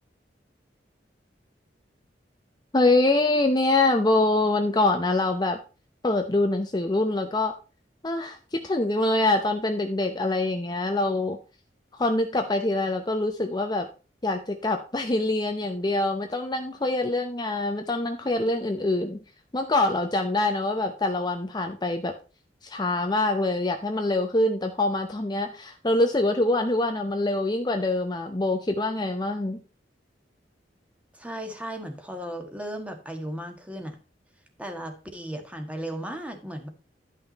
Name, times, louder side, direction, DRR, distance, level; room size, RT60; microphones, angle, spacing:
voice 1, 2.7-5.6 6.0-7.5 8.0-11.4 12.0-13.9 14.2-19.2 19.5-22.1 22.6-29.6, left 2 dB, 25° left, 5 dB, 0.7 m, -24 dB
voice 2, 31.1-34.0 34.6-36.7, right 1 dB, 10° right, 5 dB, 1.5 m, -36 dB
11.0 x 5.7 x 4.1 m, 0.33 s
head